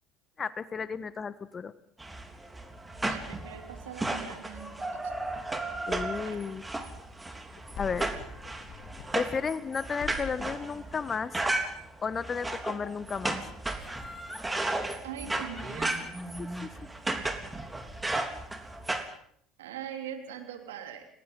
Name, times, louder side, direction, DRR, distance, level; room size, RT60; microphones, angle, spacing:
voice 1, 0.4-1.7 5.9-6.6 7.8-8.1 9.1-11.4 12.0-13.4 16.4-16.7, left 5 dB, 30° left, 15 dB, 1.3 m, -33 dB
sound 1, 2.0-19.1, right 2 dB, 15° right, 3.6 m, -35 dB
voice 2, 3.1-5.3 6.2-6.5 15.0-16.0 19.6-21.1, right 8 dB, 75° right, 5 dB, 3.3 m, -42 dB
sound 2, 7.5-9.7 10.0-10.7, left 9 dB, 55° left, 1.7 m, -45 dB
Laughter, 13.8-14.5 15.3-18.4 18.8-18.9, left 1 dB, 5° left, 4.6 m, -45 dB
29.5 x 19.5 x 5.5 m, 0.68 s
hypercardioid pair, 65°, 0 cm